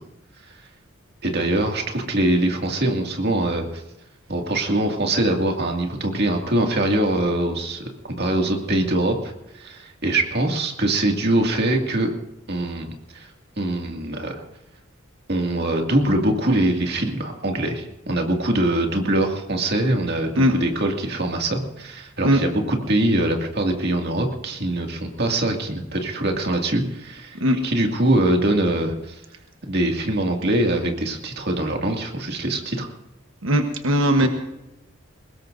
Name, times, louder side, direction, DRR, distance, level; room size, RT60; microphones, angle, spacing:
voice 1, 1.2-3.8 4.3-7.9 8.2-9.3 9.6-12.1 12.5-13.3 13.6-14.4 15.3-29.2 29.6-32.9, right 1 dB, 50° right, 2 dB, 2.2 m, -23 dB
voice 2, 33.4-34.3, equal, 80° right, 4 dB, 1.3 m, -18 dB
22.5 x 20.0 x 2.6 m, 0.92 s
head